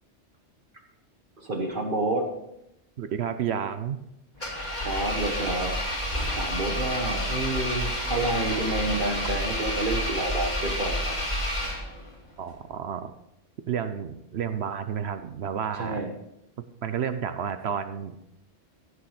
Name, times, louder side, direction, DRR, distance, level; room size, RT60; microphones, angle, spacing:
voice 1, 1.4-2.3 4.4-5.8 6.3-11.2 15.8-16.1, right 2 dB, 50° right, 3 dB, 1.4 m, -29 dB
voice 2, 3.0-4.0 12.4-13.1 13.7-16.0 16.8-18.1, right 8 dB, 70° right, 10 dB, 1.0 m, -31 dB
Engine, 4.4-12.1, equal, 40° left, 2.9 m, -29 dB
16.0 x 6.6 x 4.9 m, 0.84 s
omnidirectional pair, 1.1 m